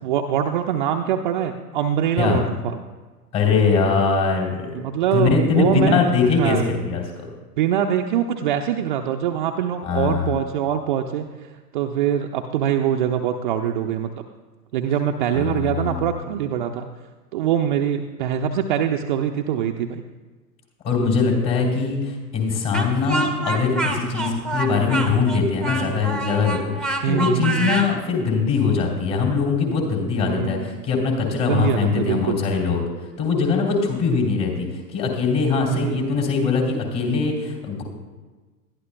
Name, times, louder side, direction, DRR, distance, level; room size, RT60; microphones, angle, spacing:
voice 1, 0.0-2.8 4.7-6.1 6.4-6.7 7.6-11.3 11.7-14.2 14.7-16.9 17.3-20.0 27.0-27.8 30.2-30.9 31.4-32.4 35.7-36.0, right 9 dB, 35° right, 3 dB, 0.5 m, -23 dB
voice 2, 3.3-4.8 5.1-7.3 9.8-10.3 15.3-16.1 20.8-32.9 33.2-37.8, left 4 dB, 30° left, -1 dB, 3.3 m, -22 dB
Speech, 22.7-27.9, right 2 dB, ahead, 0.8 m, -27 dB
20.5 x 12.0 x 2.2 m, 1.3 s
figure-of-eight pair, 100°, 47 cm